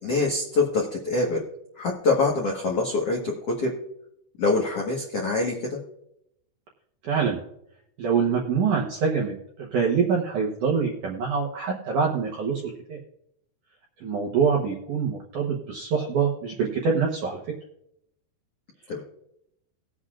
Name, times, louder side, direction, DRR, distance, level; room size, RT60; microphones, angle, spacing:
voice 1, 0.0-1.4 1.7-3.7 4.4-5.8 18.9-19.0, left 3 dB, 85° left, -2 dB, 1.3 m, -25 dB
voice 2, 7.0-7.4 8.0-13.0 14.0-17.4, right 6 dB, 75° right, -1 dB, 1.8 m, -25 dB
19.5 x 8.0 x 2.4 m, 0.76 s
omnidirectional pair, 5.2 m